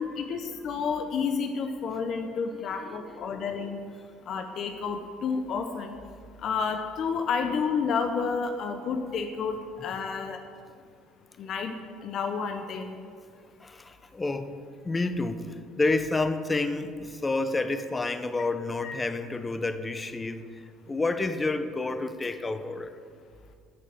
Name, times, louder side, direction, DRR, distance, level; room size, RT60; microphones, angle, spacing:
voice 1, 0.0-3.9 4.3-6.0 6.4-10.4 11.4-11.7 12.0-13.0 18.8-18.9, left 5 dB, 55° left, 6 dB, 0.9 m, -30 dB
voice 2, 13.6-14.6 14.8-23.0, left 3 dB, 20° left, 10 dB, 0.9 m, -30 dB
11.5 x 6.6 x 7.8 m, 2.2 s
hypercardioid pair, 70°, 0 cm